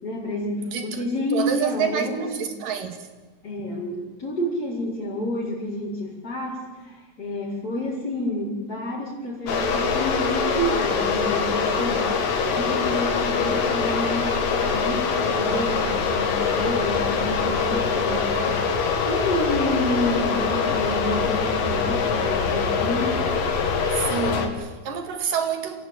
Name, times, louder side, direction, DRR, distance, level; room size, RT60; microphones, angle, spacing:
voice 1, 0.0-2.5 3.4-12.2 12.5-18.7 19.0-23.2, left 1 dB, 25° left, 5.8 m, -29 dB
voice 2, 0.6-1.0 1.3-3.0 23.9-25.9, right 6 dB, 70° right, 3.9 m, -28 dB
sound 1, 9.5-24.5, left 5 dB, 75° left, 3.8 m, -24 dB
28.0 x 16.0 x 9.4 m
omnidirectional pair, 4.0 m